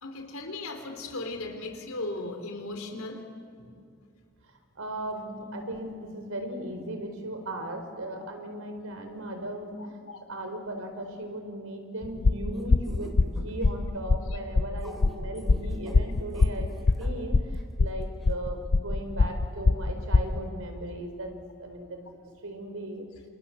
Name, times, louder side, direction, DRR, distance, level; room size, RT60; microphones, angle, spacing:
voice 1, 0.0-3.3 3.6-3.7 10.0-10.2 14.2-14.4, left 2 dB, 85° left, 5 dB, 4.0 m, -37 dB
voice 2, 4.4-10.0 10.3-16.7 17.0-22.0 22.4-23.0, right 1 dB, 80° right, 5 dB, 4.6 m, -37 dB
sound 1, 12.0-20.4, left 3 dB, 55° left, 0.6 m, -24 dB
sound 2, 12.5-13.7 14.8-17.1 17.5-17.6 18.2-18.3, equal, ahead, 3.6 m, -47 dB
28.5 x 28.0 x 7.2 m, 2.3 s
head